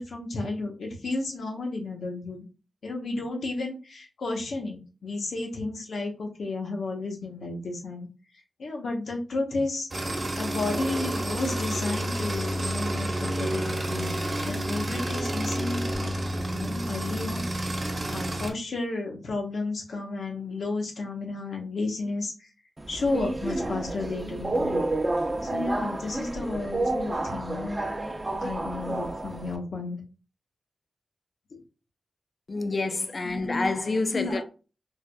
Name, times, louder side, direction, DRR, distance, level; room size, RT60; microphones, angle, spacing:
voice 1, 0.0-2.4 2.8-8.1 8.6-9.9 10.4-16.2 16.5-17.4 18.1-22.3 22.9-24.8 25.4-27.9 28.4-30.0 31.5-31.6 33.4-33.7 34.1-34.4, left 2 dB, 80° left, 0.9 m, -32 dB
sound 1, 9.9-18.5, right 1 dB, 45° right, 1.0 m, -30 dB
Subway metro underground, 22.8-29.6, right 2 dB, 25° right, 0.6 m, -30 dB
voice 2, 32.5-34.4, left 3 dB, 45° left, 0.4 m, -28 dB
4.5 x 2.4 x 2.2 m
cardioid pair, 70°, 0 cm